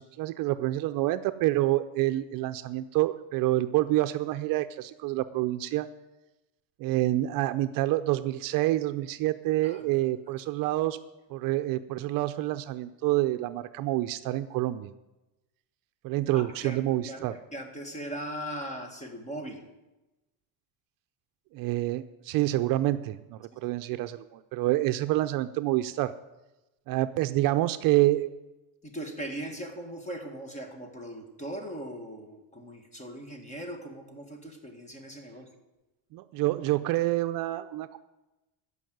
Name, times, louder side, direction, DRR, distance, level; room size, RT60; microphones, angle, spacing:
voice 1, 0.0-5.9 6.8-11.0 11.3-14.9 16.0-17.3 21.5-26.1 26.9-28.3 36.1-38.0, right 16 dB, 55° right, 10 dB, 0.6 m, -27 dB
voice 2, 9.6-10.0 16.3-19.6 23.5-23.7 28.8-35.5, right 1 dB, 15° left, 4 dB, 1.8 m, -39 dB
14.0 x 5.4 x 9.3 m, 1.0 s
cardioid pair, 150°, 40 cm